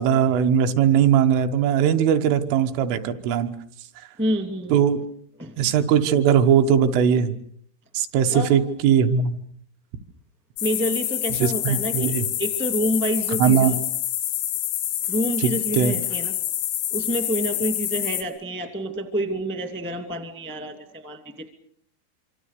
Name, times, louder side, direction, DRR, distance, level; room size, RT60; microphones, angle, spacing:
voice 1, 0.0-3.5 4.7-5.0 5.6-7.4 8.0-9.4 11.3-12.3 13.4-13.8 15.4-16.0, right 8 dB, 90° right, 6 dB, 3.8 m, -20 dB
voice 2, 4.2-4.7 5.4-5.5 8.3-8.6 10.6-12.1 12.4-13.7 15.0-16.4 16.9-21.5, equal, 10° right, 7 dB, 0.5 m, -28 dB
sound 1, 10.6-18.2, left 12 dB, 90° left, 4.3 m, -27 dB
26.0 x 25.5 x 6.7 m, 0.65 s
omnidirectional pair, 5.5 m